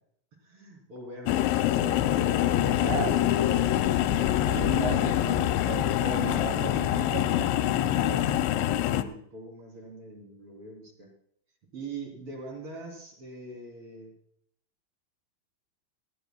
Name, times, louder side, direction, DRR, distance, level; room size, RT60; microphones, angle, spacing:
voice 1, 0.4-1.8 2.1-3.5 4.5-4.9 9.0-11.1 11.7-14.1, right 4 dB, 30° right, 1 dB, 3.5 m, -42 dB
sound 1, 1.3-9.0, left 12 dB, 80° left, 2.8 m, -25 dB
voice 2, 2.8-3.2 4.5-8.3, right 4 dB, 65° right, 0 dB, 1.1 m, -36 dB
19.5 x 15.0 x 2.3 m, 0.68 s
omnidirectional pair, 5.5 m